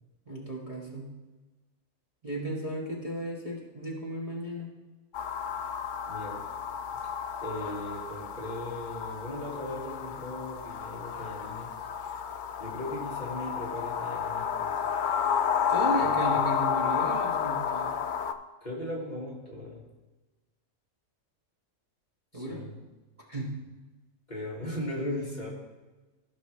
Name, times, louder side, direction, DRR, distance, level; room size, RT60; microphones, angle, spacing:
voice 1, 0.3-1.1 2.2-4.7 15.7-17.9 22.3-22.6 23.3-23.5, right 1 dB, 25° right, -4 dB, 1.4 m, -35 dB
sound 1, 5.1-18.3, left 7 dB, 75° left, 0.4 m, -31 dB
voice 2, 6.1-6.4 7.4-11.7 12.6-14.7 16.0-16.2 18.6-19.8 22.3-22.8 24.3-25.5, left 1 dB, 35° left, -4 dB, 1.8 m, -37 dB
15.5 x 5.4 x 3.2 m, 1.2 s
omnidirectional pair, 1.4 m